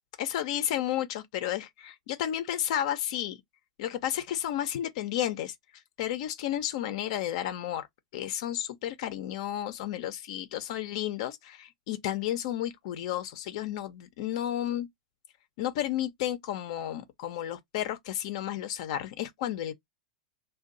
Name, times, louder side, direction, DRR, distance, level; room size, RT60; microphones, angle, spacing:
voice 1, 0.2-3.4 3.8-5.5 6.0-7.9 8.1-14.9 15.6-19.7, left 12 dB, 60° left, 0.5 m, -32 dB
2.5 x 2.2 x 3.9 m
hypercardioid pair, 110°, 4 cm